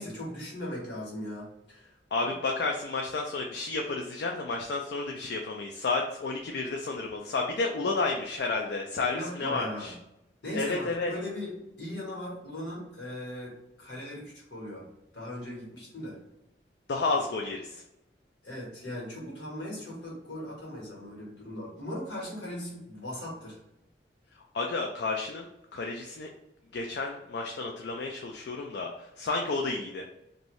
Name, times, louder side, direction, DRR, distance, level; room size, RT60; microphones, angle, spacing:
voice 1, 0.0-2.0 9.1-9.9 10.4-14.8 15.1-16.2 18.4-23.6, left 1 dB, 90° left, -4 dB, 1.4 m, -38 dB
voice 2, 2.1-9.9 10.5-11.1 16.9-17.8 24.3-26.3 26.7-30.1, left 3 dB, 75° left, 1 dB, 0.4 m, -31 dB
2.6 x 2.6 x 3.1 m, 0.87 s
head